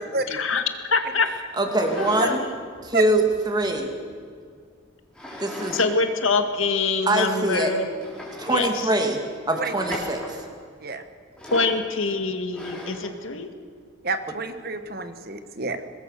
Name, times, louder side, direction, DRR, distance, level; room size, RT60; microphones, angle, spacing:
voice 1, 0.3-0.6 0.9-1.3 2.0-2.6 5.7-7.9 8.5-8.7 11.5-13.5, left 4 dB, 85° left, 7 dB, 2.1 m, -24 dB
voice 2, 1.5-2.4 2.8-3.9 5.4-5.8 7.1-7.7 8.4-9.2 9.5-10.4, right 1 dB, 20° right, 3 dB, 2.7 m, -23 dB
sound 1, 1.7-2.3 2.7-4.1 5.1-5.9 6.2-6.3 7.0-7.1 7.5-7.6 8.0-8.7 9.8-10.4 11.4-11.8 12.5-13.1, left 1 dB, 5° left, 5.1 m, -37 dB
voice 3, 14.0-15.8, right 3 dB, 50° right, 9 dB, 1.4 m, -29 dB
23.5 x 20.0 x 6.8 m, 2.1 s
head